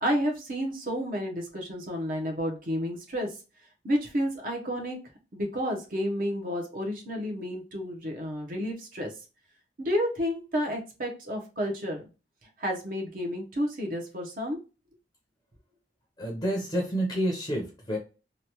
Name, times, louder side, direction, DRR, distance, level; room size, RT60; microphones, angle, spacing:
voice 1, 0.0-3.3 3.8-5.0 5.3-9.1 9.8-12.0 12.6-14.6, equal, 50° right, 1 dB, 0.8 m, -30 dB
voice 2, 16.2-18.0, right 1 dB, 20° left, -2 dB, 0.6 m, -29 dB
3.0 x 2.2 x 2.8 m, 0.32 s
head